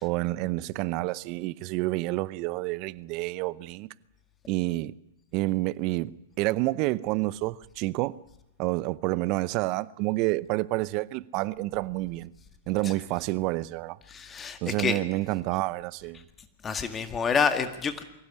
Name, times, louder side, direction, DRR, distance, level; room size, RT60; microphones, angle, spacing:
voice 1, 0.0-3.9 4.5-4.9 5.3-8.2 8.6-12.3 12.7-14.0 14.6-16.2, right 20 dB, 45° right, 0.8 m, -29 dB
voice 2, 14.1-15.0 16.6-18.1, left 6 dB, 20° left, 1.9 m, -28 dB
23.5 x 16.0 x 9.8 m
hypercardioid pair, 110°, 0 cm